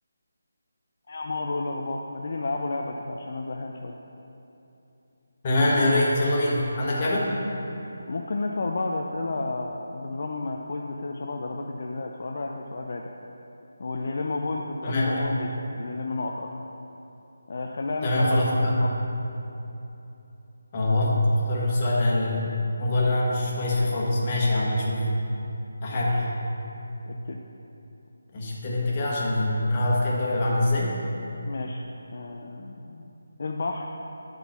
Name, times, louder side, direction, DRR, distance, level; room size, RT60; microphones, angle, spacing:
voice 1, 1.1-4.0 8.1-13.1 13.8-16.5 17.5-18.9 25.9-26.1 27.1-27.4 31.4-31.8 32.1-33.1 33.4-33.9, left 3 dB, 50° left, 0 dB, 0.5 m, -32 dB
voice 2, 5.4-7.3 14.8-15.2 18.0-18.8 20.7-22.5 22.8-25.0 25.8-26.3 28.3-31.0, left 1 dB, 25° left, -5 dB, 1.5 m, -24 dB
10.0 x 3.9 x 7.2 m, 2.9 s
figure-of-eight pair, 170°, 0 cm